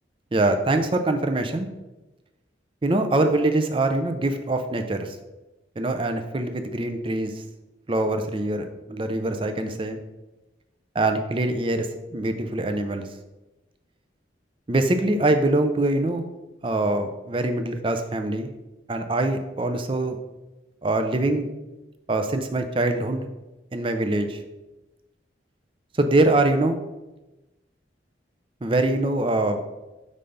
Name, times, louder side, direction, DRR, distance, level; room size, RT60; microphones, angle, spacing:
voice 1, 0.3-1.7 2.8-5.2 5.8-7.3 7.9-10.0 10.9-13.1 14.7-16.2 16.6-18.5 18.9-20.2 20.8-21.5 22.1-23.3 23.7-24.4 25.9-26.8 28.6-29.6, right 2 dB, 30° right, 7 dB, 0.4 m, -23 dB
5.2 x 3.4 x 5.3 m, 1.1 s
head